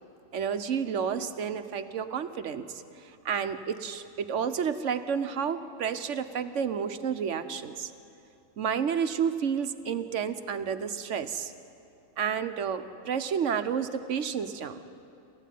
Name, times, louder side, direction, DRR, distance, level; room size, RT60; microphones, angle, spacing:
voice 1, 0.3-2.7 3.2-7.9 8.6-11.5 12.2-14.8, right 7 dB, 85° right, 10 dB, 1.2 m, -30 dB
28.0 x 14.5 x 9.3 m, 2.7 s
omnidirectional pair, 1.2 m